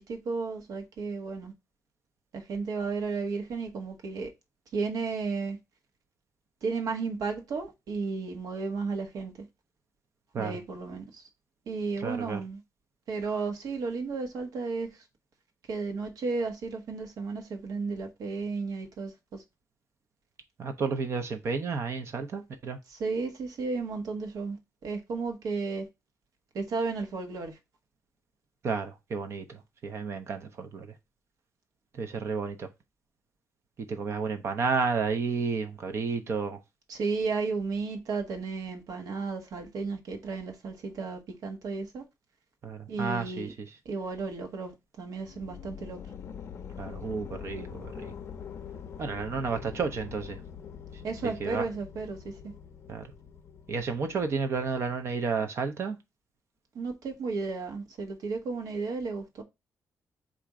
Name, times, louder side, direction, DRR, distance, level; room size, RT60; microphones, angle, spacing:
voice 1, 0.0-1.5 2.3-4.3 4.7-5.6 6.6-9.3 10.4-11.2 11.7-12.6 13.1-14.9 15.7-19.4 22.9-24.6 24.8-25.9 26.5-27.6 36.9-42.0 42.9-43.5 43.8-44.7 45.0-46.0 51.0-52.3 56.7-59.4, right 4 dB, 75° right, 1.0 m, -33 dB
voice 2, 12.0-12.4 20.6-22.8 28.6-30.9 31.9-32.7 33.9-36.6 42.6-43.5 46.8-48.1 49.0-50.4 51.4-51.7 52.9-53.1 53.7-56.0, right 5 dB, 45° right, 0.6 m, -31 dB
sound 1, 45.2-55.1, left 7 dB, 45° left, 0.5 m, -44 dB
4.2 x 2.5 x 4.7 m
wide cardioid pair, 170°, 6 cm